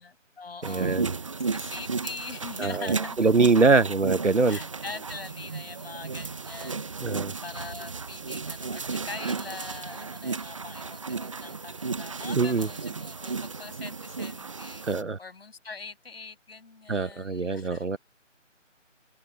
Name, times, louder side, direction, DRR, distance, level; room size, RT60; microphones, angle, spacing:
voice 1, 0.0-3.8 4.5-14.9 15.2-17.9, left 4 dB, 50° left, 6.9 m, -43 dB
sound 1, 0.6-15.0, right 4 dB, 25° right, 1.1 m, -34 dB
voice 2, 0.6-1.1 2.6-2.9 3.2-4.6 7.0-7.3 12.3-12.7 14.9-15.2 16.9-18.0, right 4 dB, 70° right, 1.6 m, -23 dB
figure-of-eight pair, 160°, 38 cm